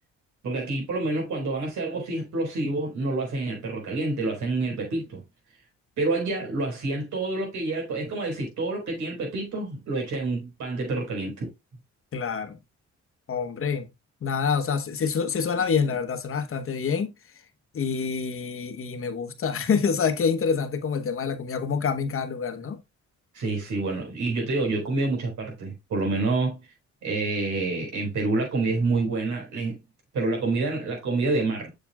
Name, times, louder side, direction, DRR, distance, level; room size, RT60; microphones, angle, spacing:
voice 1, 0.4-5.2 6.0-11.5 23.3-26.6 27.0-29.8 30.1-31.7, right 3 dB, 70° right, 4.5 m, -28 dB
voice 2, 12.1-12.6 13.3-13.9 14.2-17.1 17.7-22.8, left 6 dB, 45° left, 1.1 m, -26 dB
7.1 x 6.6 x 2.3 m
cardioid pair, 90°, 30 cm